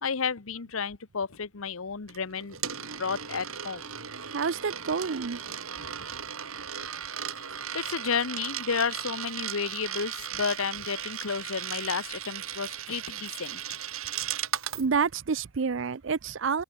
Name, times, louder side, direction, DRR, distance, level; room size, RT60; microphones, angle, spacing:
voice 1, 0.0-3.8 7.7-13.8, left 5 dB, 80° left, 0.9 m, -32 dB
Coin (dropping), 2.1-14.9, right 9 dB, 90° right, 4.5 m, -36 dB
voice 2, 4.3-5.4 14.8-16.6, right 5 dB, 65° right, 0.5 m, -28 dB
head